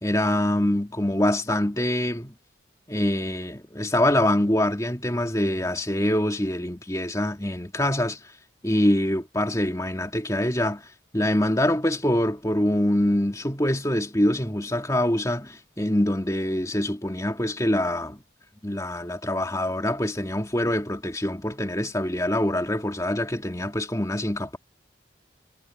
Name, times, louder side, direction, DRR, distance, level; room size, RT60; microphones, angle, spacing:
voice 1, 0.0-2.3 2.9-8.3 8.6-10.9 11.1-18.2 18.6-24.6, left 1 dB, 15° left, 2.3 m, -24 dB
head